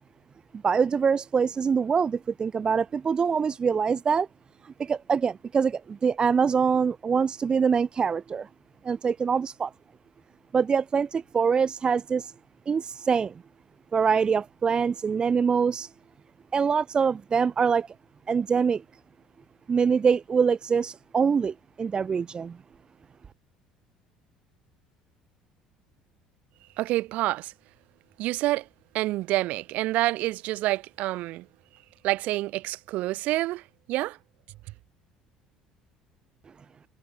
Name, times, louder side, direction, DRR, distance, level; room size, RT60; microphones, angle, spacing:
voice 1, 0.6-4.3 4.6-8.5 8.8-9.7 10.5-12.3 12.7-13.3 13.9-15.9 16.5-17.9 18.3-18.8 19.7-22.6, right 6 dB, 30° right, 0.5 m, -24 dB
voice 2, 26.8-27.5 28.2-28.7 28.9-31.5 32.0-34.2, right 17 dB, 60° right, 1.3 m, -28 dB
figure-of-eight pair, 60°, 3 cm